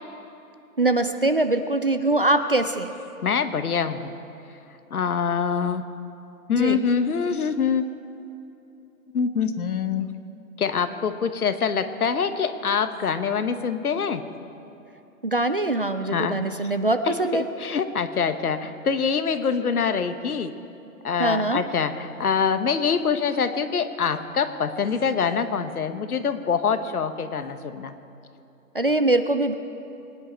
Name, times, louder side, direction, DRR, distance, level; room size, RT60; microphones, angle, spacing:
voice 1, 0.8-2.9 6.5-6.8 15.2-17.4 21.2-21.6 28.7-29.5, right 2 dB, 40° right, 9 dB, 0.4 m, -23 dB
voice 2, 3.2-4.1 4.9-5.8 6.5-7.8 9.1-10.1 10.6-14.2 16.1-16.4 17.1-20.5 21.0-27.9, left 6 dB, 70° left, 10 dB, 1.2 m, -25 dB
23.0 x 9.9 x 4.4 m, 2.8 s
hypercardioid pair, 160°, 46 cm